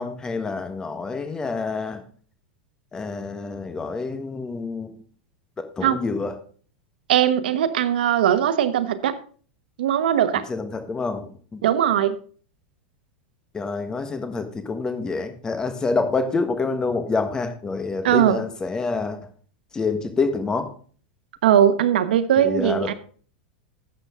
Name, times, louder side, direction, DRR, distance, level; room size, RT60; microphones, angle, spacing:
voice 1, 0.0-2.0 2.9-4.9 5.6-6.3 10.5-11.6 13.5-19.3 19.7-20.7 22.4-22.9, left 4 dB, 15° left, 8 dB, 1.4 m, -27 dB
voice 2, 7.1-9.2 9.8-10.4 11.6-12.2 18.0-18.4 21.4-22.9, right 10 dB, 85° right, 13 dB, 1.1 m, -20 dB
12.0 x 7.9 x 3.7 m, 0.43 s
supercardioid pair, 150°, 5 cm